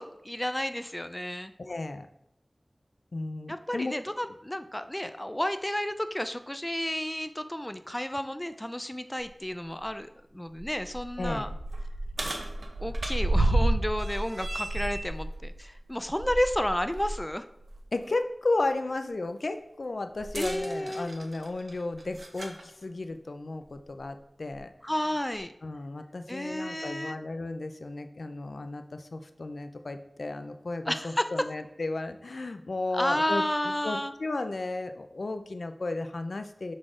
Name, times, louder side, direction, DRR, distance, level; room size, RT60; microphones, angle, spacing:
voice 1, 0.0-1.5 3.5-11.5 12.8-17.4 20.3-21.1 24.8-25.5 26.3-27.2 30.9-31.3 32.9-34.1, left 1 dB, 15° left, 10 dB, 0.3 m, -31 dB
voice 2, 1.6-2.1 3.1-3.9 11.2-11.5 17.9-24.7 25.6-36.7, left 2 dB, 80° left, 8 dB, 0.4 m, -34 dB
sound 1, 9.2-9.3 9.8-9.9 10.5-17.2 17.6-17.8 20.2-22.6 23.6-23.7 24.5-24.6, right 1 dB, 70° right, 0.8 m, -31 dB
6.4 x 4.0 x 3.7 m, 0.79 s
wide cardioid pair, 65°, 0 cm